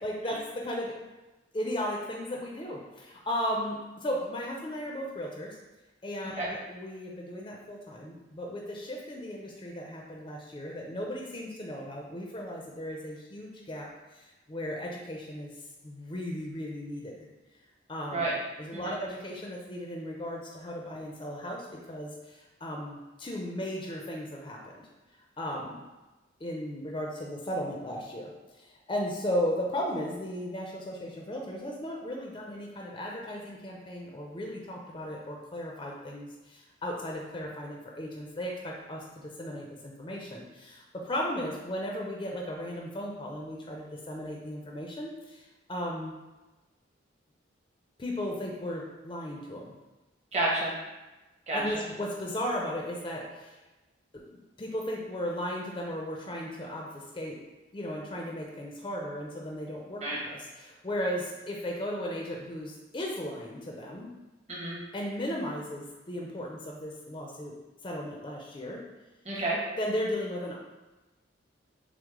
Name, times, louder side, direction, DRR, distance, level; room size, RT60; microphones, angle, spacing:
voice 1, 0.0-0.9 1.5-5.6 6.0-15.5 15.8-17.2 17.9-18.3 18.6-24.8 25.4-25.8 26.4-46.1 48.0-49.7 51.5-53.6 54.1-57.4 57.7-64.1 64.9-67.5 67.8-68.8 69.8-70.6, equal, 25° left, -1 dB, 0.4 m, -36 dB
voice 2, 50.3-50.7 51.5-51.6 60.0-60.2 64.5-64.8 69.2-69.6, right 2 dB, 35° right, -5 dB, 1.0 m, -30 dB
6.0 x 2.0 x 3.6 m, 1.1 s
head